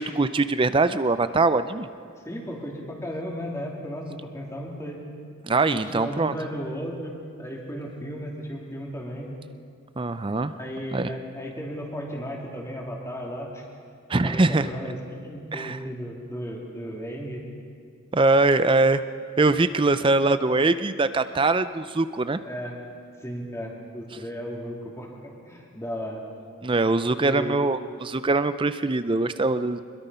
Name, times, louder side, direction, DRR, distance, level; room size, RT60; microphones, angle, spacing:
voice 1, 0.0-1.9 5.5-6.3 10.0-10.5 10.9-11.1 14.1-14.7 15.5-15.8 18.1-19.0 19.4-22.4 26.6-29.8, right 3 dB, 25° right, 12 dB, 0.5 m, -22 dB
voice 2, 2.2-5.0 5.7-9.3 10.6-13.6 14.2-17.4 22.4-22.8 23.2-26.3 27.2-27.7, equal, 15° left, -1 dB, 3.0 m, -35 dB
25.0 x 22.0 x 5.6 m, 2.2 s
head